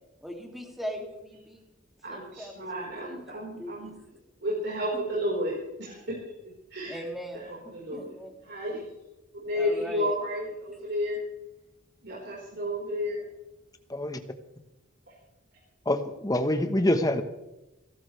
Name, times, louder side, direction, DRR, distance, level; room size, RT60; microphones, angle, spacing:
voice 1, 0.2-1.6 2.1-4.0 4.9-5.1 6.9-7.4 7.9-8.3 9.5-10.1, equal, ahead, 1 dB, 2.7 m, -39 dB
voice 2, 2.0-4.0 4.4-6.0 6.7-7.0 7.3-8.2 8.4-8.8 9.3-11.2 12.0-13.2, equal, 55° right, -5 dB, 4.7 m, -32 dB
voice 3, 15.8-17.2, left 1 dB, 20° left, 7 dB, 1.2 m, -25 dB
29.5 x 12.5 x 3.4 m, 0.97 s
head